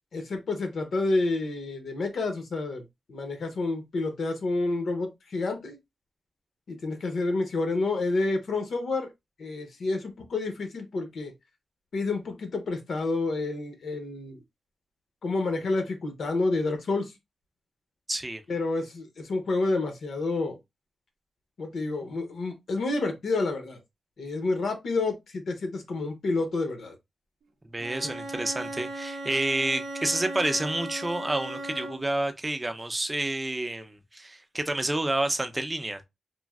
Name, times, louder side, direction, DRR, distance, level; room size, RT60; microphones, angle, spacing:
voice 1, 0.1-5.8 6.7-9.1 9.4-11.3 11.9-14.4 15.2-17.1 18.5-20.6 21.6-23.8 24.2-26.9, left 3 dB, 65° left, 0.6 m, -29 dB
voice 2, 18.1-18.4 27.7-36.0, right 2 dB, 15° right, 0.4 m, -29 dB
Bowed string instrument, 27.8-32.2, right 2 dB, 75° right, 0.5 m, -37 dB
3.0 x 2.5 x 2.3 m
wide cardioid pair, 155°, 0 cm